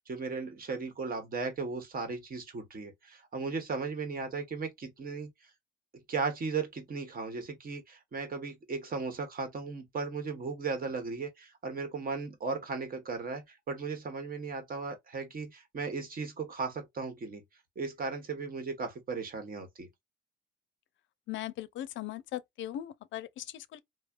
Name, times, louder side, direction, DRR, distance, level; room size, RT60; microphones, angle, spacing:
voice 1, 0.1-5.3 6.1-17.4 17.8-19.9, right 4 dB, 45° right, 1.1 m, -36 dB
voice 2, 21.3-23.8, left 12 dB, 75° left, 0.4 m, -39 dB
3.2 x 2.0 x 2.3 m
cardioid pair, 90°, 20 cm